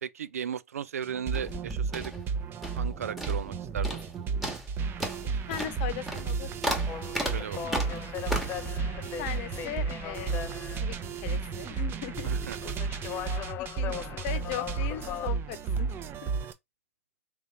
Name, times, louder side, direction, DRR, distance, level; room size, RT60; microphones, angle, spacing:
voice 1, 0.0-2.1 2.7-4.0 7.3-7.8 12.2-12.7, right 8 dB, 75° right, 0.4 m, -36 dB
sound 1, 1.0-16.5, right 5 dB, 30° right, 0.7 m, -33 dB
sound 2, 1.3-2.9 3.2-3.6 3.8-4.1 4.4-8.7, equal, ahead, 1.3 m, -35 dB
voice 2, 5.5-6.7 9.2-10.5 10.8-12.3 13.6-16.3, left 11 dB, 50° left, 0.9 m, -39 dB
sound 3, 6.9-15.3, left 9 dB, 25° left, 0.4 m, -40 dB
3.6 x 3.0 x 4.1 m
hypercardioid pair, 105°, 8 cm